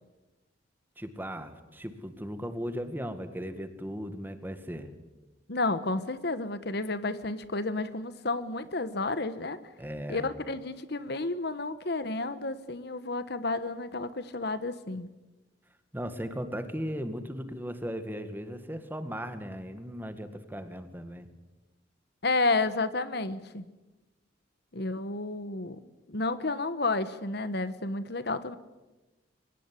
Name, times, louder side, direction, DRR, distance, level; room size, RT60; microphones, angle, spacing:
voice 1, 1.0-4.9 9.8-10.3 15.9-21.3, equal, 10° right, 9 dB, 1.9 m, -37 dB
voice 2, 5.5-9.6 10.1-15.1 22.2-23.6 24.7-25.8 26.1-28.6, left 3 dB, 60° left, 13 dB, 1.3 m, -31 dB
24.0 x 18.5 x 9.9 m, 1.1 s
head